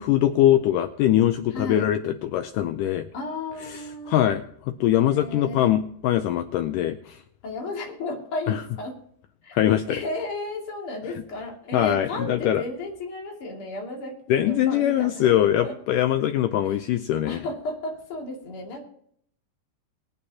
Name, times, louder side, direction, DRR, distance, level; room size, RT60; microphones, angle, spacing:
voice 1, 0.0-3.1 3.7-4.4 4.8-7.2 8.5-8.6 9.5-10.0 11.7-12.6 14.3-17.4, left 12 dB, 80° left, 9 dB, 1.9 m, -22 dB
voice 2, 1.5-1.8 3.1-4.3 4.8-5.7 7.4-9.0 9.4-9.6 9.9-15.3 15.6-15.7 16.7-16.8 17.2-18.9, left 2 dB, 40° left, 0 dB, 2.9 m, -34 dB
24.0 x 8.8 x 2.9 m, 0.66 s
omnidirectional pair, 4.3 m